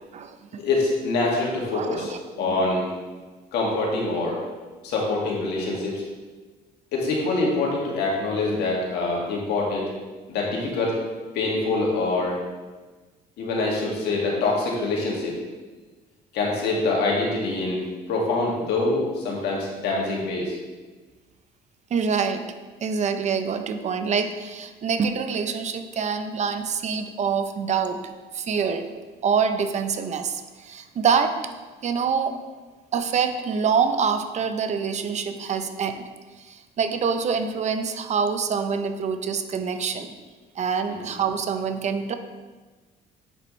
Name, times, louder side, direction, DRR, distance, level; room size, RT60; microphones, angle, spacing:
voice 1, 0.6-2.1 2.4-2.9 3.5-4.4 4.8-6.0 6.9-9.9 10.3-11.0 11.3-12.4 13.4-15.4 16.3-17.8 18.1-20.6 40.9-41.0, left 3 dB, 80° left, -2 dB, 1.9 m, -25 dB
voice 2, 1.7-2.2 2.5-2.6 21.9-22.4 22.8-28.0 28.3-28.9 29.2-31.4 31.8-32.4 32.9-36.0 36.4-40.1 40.6-42.1, right 6 dB, 45° right, 8 dB, 0.6 m, -25 dB
8.0 x 6.2 x 3.1 m, 1.3 s
cardioid pair, 110°, 17 cm